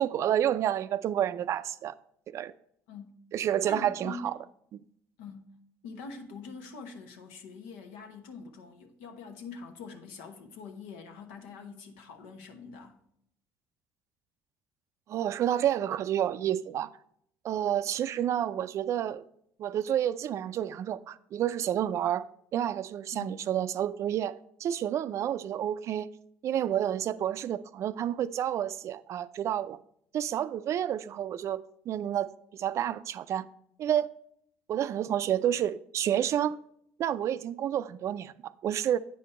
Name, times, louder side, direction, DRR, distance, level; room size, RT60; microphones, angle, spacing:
voice 1, 0.0-1.9 2.3-2.5 3.3-4.4 15.1-16.9 17.4-19.2 19.6-22.3 22.5-26.1 26.4-29.8 30.1-32.3 32.6-33.5 33.8-34.1 34.7-36.6 37.0-39.0, right 10 dB, 55° right, 0.4 m, -29 dB
voice 2, 2.9-3.2 3.6-4.4 5.2-5.5 5.8-13.0 23.1-23.4, left 4 dB, 85° left, 1.0 m, -44 dB
8.3 x 5.3 x 4.2 m
supercardioid pair, 75°, 6 cm